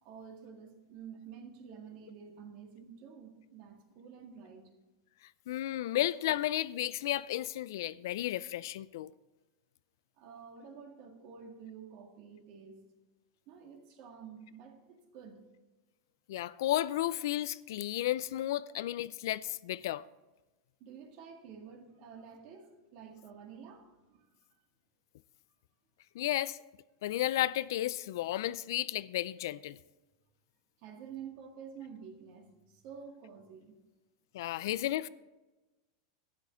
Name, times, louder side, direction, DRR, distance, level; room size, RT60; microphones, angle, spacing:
voice 1, 0.0-4.7 10.2-12.9 13.5-15.4 18.6-18.8 20.8-24.3 30.8-33.7, right 7 dB, 45° right, 1.9 m, -50 dB
voice 2, 5.5-9.1 16.3-20.0 26.1-26.6 27.0-29.8 34.3-35.1, left 14 dB, 70° left, 0.4 m, -33 dB
12.0 x 9.6 x 3.9 m
supercardioid pair, 150°, 2 cm